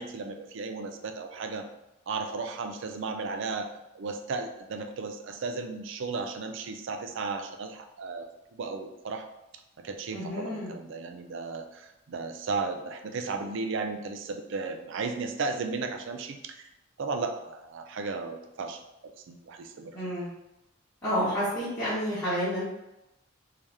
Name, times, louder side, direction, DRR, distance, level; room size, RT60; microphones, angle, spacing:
voice 1, 0.0-1.7 2.1-3.7 3.9-9.3 9.8-16.7 17.0-20.0, right 4 dB, 60° right, 6 dB, 0.4 m, -35 dB
voice 2, 10.1-10.7 19.9-20.3 21.0-22.7, equal, 15° left, -13 dB, 1.1 m, -29 dB
3.3 x 2.8 x 3.4 m, 0.92 s
head